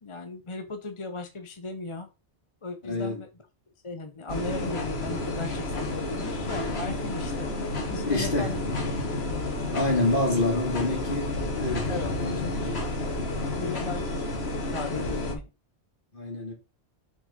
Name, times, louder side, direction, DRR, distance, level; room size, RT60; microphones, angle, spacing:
voice 1, 0.0-2.1 2.6-3.3 3.8-7.5 7.9-8.6 10.5-10.6 11.9-12.1 13.6-14.2 14.6-15.4, left 3 dB, 30° left, 0.8 m, -36 dB
voice 2, 2.8-3.2 8.1-8.5 9.7-12.9 15.0-15.2 16.1-16.5, left 2 dB, 50° left, 2.4 m, -28 dB
sound 1, 4.3-15.3, left 2 dB, 65° left, 1.8 m, -31 dB
5.9 x 4.5 x 5.0 m
omnidirectional pair, 1.1 m